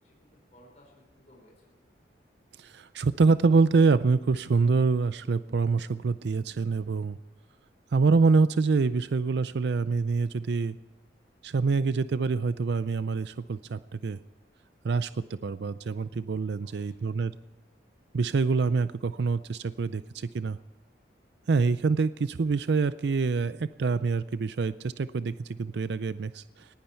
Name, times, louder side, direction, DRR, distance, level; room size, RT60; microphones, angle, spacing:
voice 1, 0.0-1.8 16.6-17.1, equal, 40° left, -1 dB, 4.6 m, -59 dB
voice 2, 2.6-7.2 7.9-10.8 11.4-14.2 14.8-17.3 18.1-20.6 21.5-26.7, right 4 dB, 70° right, 14 dB, 0.4 m, -26 dB
20.0 x 16.0 x 4.5 m, 1.2 s
head